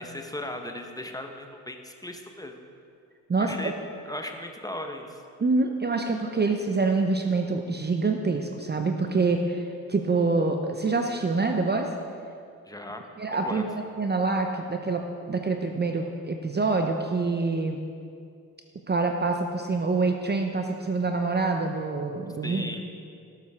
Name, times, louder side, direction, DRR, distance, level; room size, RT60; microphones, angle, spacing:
voice 1, 0.0-2.6 3.4-3.7 4.0-5.2 12.7-13.6 22.4-22.8, left 1 dB, 10° left, 4 dB, 1.2 m, -37 dB
voice 2, 3.3-3.7 5.4-11.9 13.2-17.8 18.9-22.7, right 3 dB, 20° right, 4 dB, 0.9 m, -26 dB
18.0 x 7.4 x 3.7 m, 2.3 s
figure-of-eight pair, 45°, 44 cm